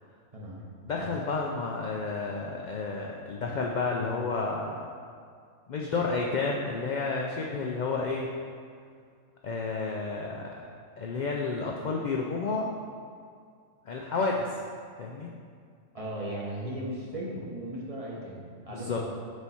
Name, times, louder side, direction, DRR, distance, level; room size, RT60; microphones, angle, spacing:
voice 1, 0.8-4.8 5.7-8.3 9.4-10.5 11.0-12.8 13.9-14.6 15.0-15.3 18.7-19.0, left 4 dB, 75° left, -1 dB, 0.4 m, -31 dB
voice 2, 15.9-19.1, right 1 dB, 30° right, -5 dB, 0.8 m, -37 dB
4.8 x 4.1 x 5.5 m, 2.2 s
omnidirectional pair, 1.3 m